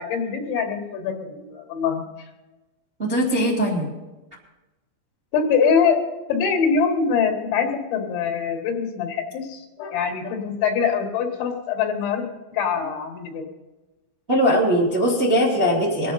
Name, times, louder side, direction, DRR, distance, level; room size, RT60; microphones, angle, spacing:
voice 1, 0.0-2.1 5.3-6.0 6.3-12.3 12.5-13.5, left 6 dB, 75° left, 3 dB, 4.0 m, -23 dB
voice 2, 3.0-3.9 14.3-16.1, equal, 15° right, -2 dB, 2.2 m, -20 dB
23.0 x 9.2 x 4.2 m, 1.1 s
omnidirectional pair, 5.4 m